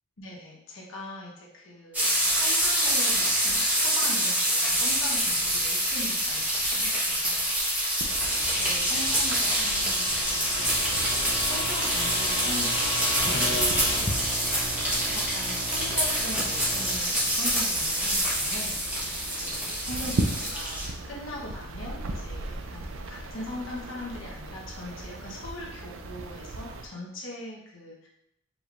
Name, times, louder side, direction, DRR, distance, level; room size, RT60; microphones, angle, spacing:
voice 1, 0.2-8.3 8.6-13.4 13.7-19.0 19.3-28.1, left 1 dB, 80° left, -4 dB, 1.0 m, -41 dB
sound 1, 1.9-20.9, equal, 10° right, 1.1 m, -26 dB
sound 2, 5.4-14.2, left 1 dB, 20° left, 0.6 m, -34 dB
sound 3, 8.0-26.9, right 2 dB, 80° right, 0.5 m, -37 dB
5.0 x 3.5 x 2.5 m, 0.79 s
head